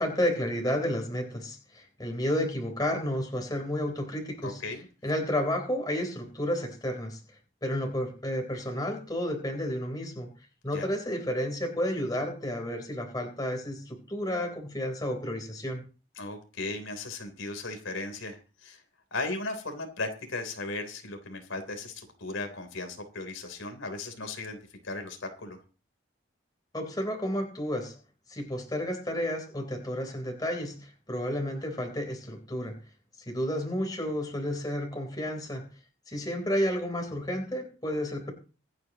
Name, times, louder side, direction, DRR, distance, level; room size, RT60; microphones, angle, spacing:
voice 1, 0.0-4.6 5.0-7.2 7.6-10.3 10.6-15.8 26.7-28.0 28.3-32.8 33.3-35.6 36.1-38.3, equal, 20° left, 3 dB, 3.8 m, -31 dB
voice 2, 4.4-4.9 10.7-10.9 16.2-18.8 19.1-24.6 24.8-25.6, left 2 dB, 85° left, 5 dB, 3.5 m, -36 dB
25.5 x 9.5 x 3.0 m, 0.34 s
head